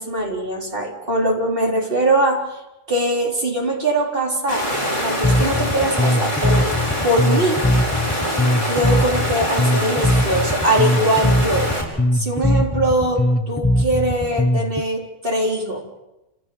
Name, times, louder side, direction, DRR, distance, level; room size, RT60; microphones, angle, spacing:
voice 1, 0.0-2.5 2.9-4.7 5.0-6.7 7.0-7.6 8.6-11.7 12.1-15.8, right 1 dB, 45° right, -1 dB, 4.5 m, -22 dB
Water, 4.5-11.8, equal, 40° left, 6.3 m, -24 dB
Bass guitar, 5.2-14.8, left 1 dB, 10° left, 0.8 m, -20 dB
28.5 x 16.5 x 8.8 m, 0.99 s
omnidirectional pair, 1.3 m